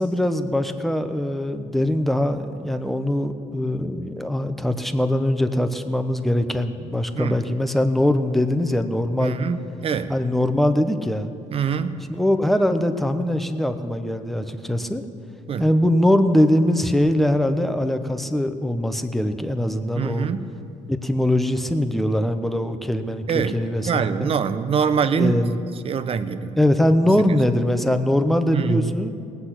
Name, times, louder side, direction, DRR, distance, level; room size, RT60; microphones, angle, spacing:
voice 1, 0.0-9.4 10.1-11.3 12.1-15.0 15.6-20.3 20.9-24.1 25.1-25.6 26.6-29.1, left 1 dB, ahead, 8 dB, 0.9 m, -22 dB
voice 2, 9.2-10.1 11.5-12.0 15.5-15.7 19.9-20.5 23.3-23.6 23.9-25.4 25.8-26.6 28.5-28.9, right 6 dB, 50° right, 12 dB, 0.7 m, -24 dB
18.5 x 8.2 x 5.9 m, 2.5 s
cardioid pair, 90°, 13 cm